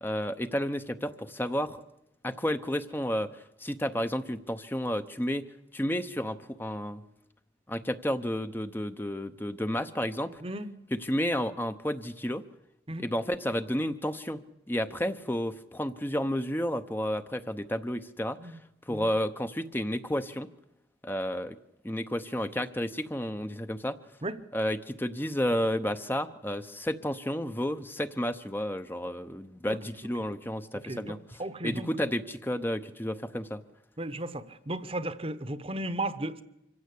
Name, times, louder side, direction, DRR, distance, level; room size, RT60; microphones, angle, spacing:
voice 1, 0.0-1.8 2.2-5.4 5.7-7.0 7.7-10.4 10.9-12.4 13.0-14.4 14.7-18.4 18.9-20.5 21.0-21.6 21.8-23.9 24.5-33.6, equal, 10° left, 10 dB, 0.8 m, -31 dB
voice 2, 30.8-31.1 31.4-31.9 34.0-36.4, right 1 dB, 30° right, 12 dB, 1.0 m, -35 dB
25.5 x 16.0 x 8.4 m, 0.85 s
head